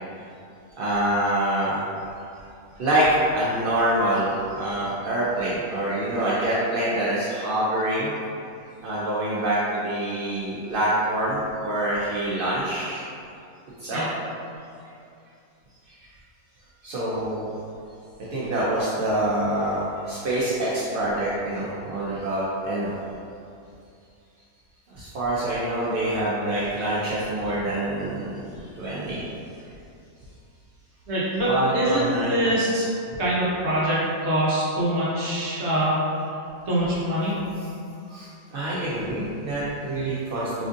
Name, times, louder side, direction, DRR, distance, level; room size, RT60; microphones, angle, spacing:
voice 1, 0.8-1.8 2.8-8.1 8.8-13.1 13.8-14.0 16.0-16.1 16.8-17.5 18.3-23.0 25.0-29.2 29.6-29.7 31.3-32.5 36.6-36.8 37.6-37.7 38.1-40.7, right 1 dB, 80° right, -8 dB, 0.5 m, -26 dB
voice 2, 31.1-32.9 33.2-36.0 36.7-37.4, right 1 dB, 55° right, -7 dB, 1.0 m, -24 dB
4.3 x 2.6 x 2.4 m, 2.6 s
omnidirectional pair, 1.6 m